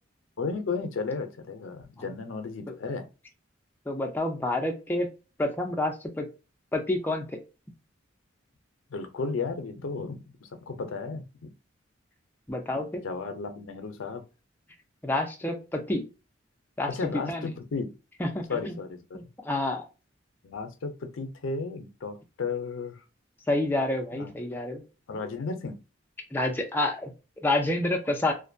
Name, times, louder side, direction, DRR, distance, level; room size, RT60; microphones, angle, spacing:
voice 1, 0.4-3.1 8.9-11.5 13.0-14.2 16.9-17.9 18.5-19.2 20.4-23.0 24.1-24.3 25.1-25.8, left 4 dB, 85° left, 7 dB, 0.5 m, -34 dB
voice 2, 3.9-5.1 5.4-6.3 6.7-7.4 12.5-13.0 15.0-16.0 16.8-17.5 18.2-18.8 19.1-19.9 23.5-24.8 26.3-27.1 27.4-28.3, left 2 dB, 10° left, 1 dB, 0.3 m, -28 dB
2.5 x 2.1 x 2.5 m, 0.31 s
head